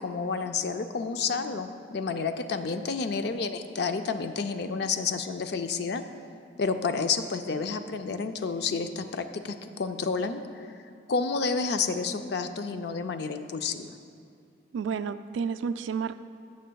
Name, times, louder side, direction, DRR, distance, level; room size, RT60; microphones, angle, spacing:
voice 1, 0.0-6.0 6.6-10.7 11.1-14.0, left 4 dB, 60° left, 8 dB, 0.4 m, -30 dB
voice 2, 14.7-16.1, right 6 dB, 80° right, 12 dB, 0.3 m, -30 dB
15.5 x 6.6 x 2.3 m, 2.4 s
head